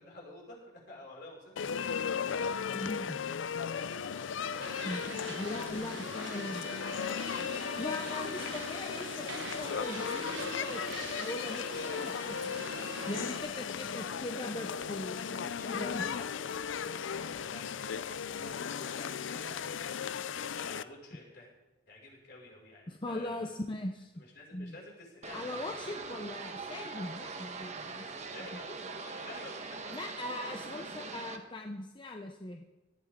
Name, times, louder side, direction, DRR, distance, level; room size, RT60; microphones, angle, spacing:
voice 1, 0.0-2.7 13.9-14.4 15.3-21.5 21.9-23.5 24.2-26.7 28.2-30.3 30.6-31.2, left 2 dB, 60° left, -3 dB, 5.6 m, -52 dB
sound 1, 1.6-20.8, left 7 dB, 80° left, 0.5 m, -36 dB
voice 2, 2.7-3.2 4.8-6.7 7.8-12.6 13.1-16.0 22.9-24.1 24.5-24.7 25.3-28.6 29.9-32.6, left 1 dB, 25° left, 3 dB, 0.8 m, -40 dB
sound 2, 4.6-13.4, right 4 dB, 70° right, 1.2 m, -44 dB
sound 3, 25.2-31.4, right 4 dB, 40° right, 1.3 m, -42 dB
18.0 x 13.5 x 3.7 m, 1.1 s
head